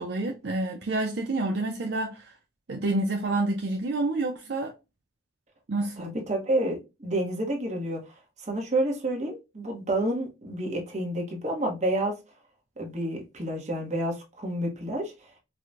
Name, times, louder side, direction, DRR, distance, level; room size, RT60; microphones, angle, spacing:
voice 1, 0.0-2.3 2.7-4.7 5.7-6.1, right 2 dB, 60° right, 0.5 m, -28 dB
voice 2, 6.0-8.0 8.4-12.2 12.8-15.1, right 1 dB, 35° right, 1.0 m, -29 dB
4.8 x 2.1 x 2.4 m
head